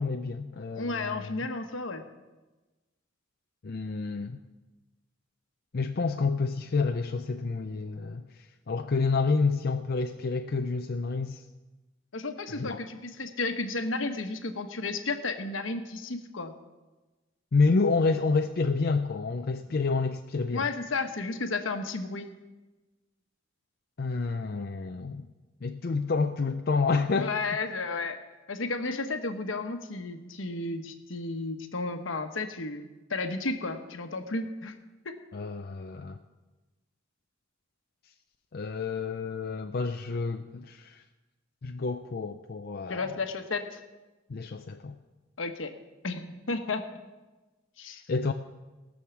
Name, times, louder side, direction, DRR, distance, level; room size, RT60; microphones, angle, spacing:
voice 1, 0.0-1.3 3.6-4.4 5.7-11.4 12.5-12.8 17.5-20.7 24.0-25.2 25.6-27.3 35.3-36.2 38.5-41.0 41.6-43.2 44.3-45.0 47.9-48.3, left 4 dB, 50° left, 5 dB, 0.5 m, -29 dB
voice 2, 0.7-2.0 12.1-16.5 20.5-22.3 27.2-28.2 28.5-34.8 35.0-35.1 42.9-43.8 45.4-45.7 46.0-46.9 47.8-48.0, left 3 dB, 75° left, 6 dB, 1.2 m, -33 dB
18.0 x 6.4 x 7.1 m, 1.2 s
head